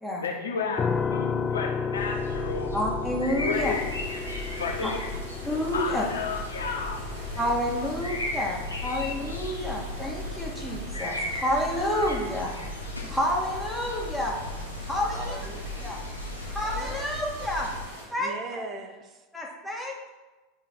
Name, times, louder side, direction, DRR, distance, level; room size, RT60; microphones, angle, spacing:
voice 1, 0.2-2.7 3.3-3.9 4.5-5.0 5.7-7.0 7.3-7.4 7.8-7.9 8.2-8.4, left 5 dB, 70° left, 0 dB, 0.8 m, -32 dB
sound 1, 0.8-13.6, left 6 dB, 25° left, 0.6 m, -35 dB
sound 2, 1.9-17.9, left 1 dB, 90° left, 1.3 m, -36 dB
voice 2, 2.7-3.7 4.8-4.9 5.4-6.0 7.4-12.5 13.1-14.4 14.8-15.4 15.8-16.0 16.4-17.7 18.1-18.3 19.3-20.1, equal, ahead, -4 dB, 2.1 m, -29 dB
sound 3, 3.5-18.1, equal, 75° right, 2.2 m, -45 dB
voice 3, 15.1-16.1 16.6-17.0 18.2-19.2, right 4 dB, 35° right, 7 dB, 1.0 m, -40 dB
11.0 x 5.1 x 4.6 m, 1.2 s
figure-of-eight pair, 80°, 0 cm